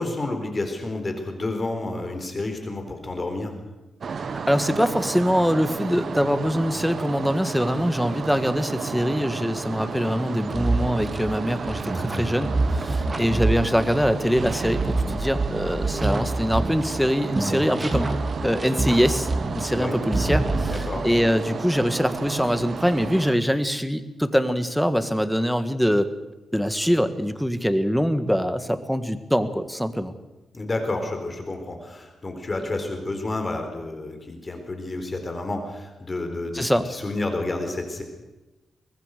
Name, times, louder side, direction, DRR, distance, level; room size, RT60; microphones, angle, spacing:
voice 1, 0.0-3.5 19.7-20.0 20.7-21.0 30.5-38.0, left 2 dB, 30° left, 5 dB, 4.1 m, -30 dB
sound 1, 4.0-23.4, right 5 dB, 55° right, 1.4 m, -33 dB
voice 2, 4.5-18.1 18.4-19.3 19.5-26.1 26.5-30.1 36.5-36.9, equal, ahead, 10 dB, 1.6 m, -23 dB
sound 2, 10.5-17.1 17.3-19.8 20.1-21.2, right 2 dB, 25° right, 3.0 m, -27 dB
24.0 x 19.5 x 6.7 m, 1.1 s
cardioid pair, 110°, 0 cm